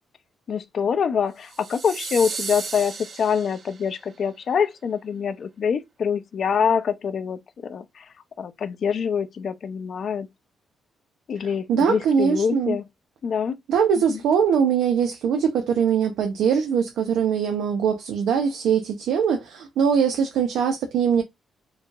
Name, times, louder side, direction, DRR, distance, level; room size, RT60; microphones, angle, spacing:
voice 1, 0.5-8.1 8.4-10.3 11.3-12.8 13.2-13.6 14.1-14.2, left 7 dB, 60° left, 0.7 m, -25 dB
sound 1, 1.5-3.9, right 4 dB, 55° right, 0.9 m, -34 dB
voice 2, 11.7-12.8 13.7-21.2, right 7 dB, 80° right, 0.8 m, -22 dB
4.6 x 3.4 x 2.5 m
cardioid pair, 75°, 0 cm